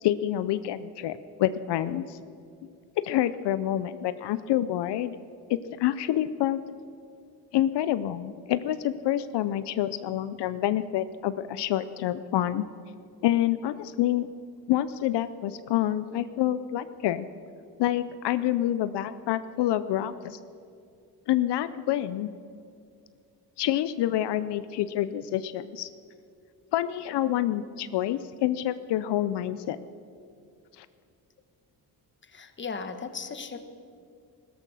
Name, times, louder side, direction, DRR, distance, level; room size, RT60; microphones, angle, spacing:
voice 1, 0.0-2.2 3.0-5.2 5.5-6.6 7.5-12.7 13.2-14.3 14.7-17.3 17.8-20.4 21.3-22.3 23.6-25.9 26.7-29.8 30.8-30.9, left 12 dB, 80° left, 14 dB, 0.6 m, -27 dB
voice 2, 32.3-33.6, left 5 dB, 30° left, 9 dB, 1.2 m, -36 dB
17.0 x 13.5 x 6.3 m, 2.3 s
cardioid pair, 125°, 41 cm